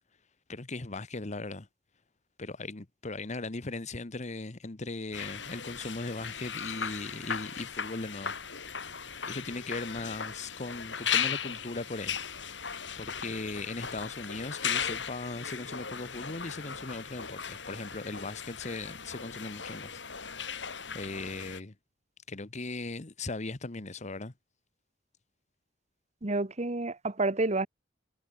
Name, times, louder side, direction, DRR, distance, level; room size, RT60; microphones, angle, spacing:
voice 1, 0.5-1.7 2.4-8.3 9.2-12.2 13.0-20.0 20.9-21.7 22.3-24.3, left 3 dB, 40° left, 1.2 m, -38 dB
sound 1, 5.1-21.6, left 7 dB, 75° left, 6.6 m, -37 dB
voice 2, 26.2-27.7, right 2 dB, 40° right, 1.3 m, -29 dB
head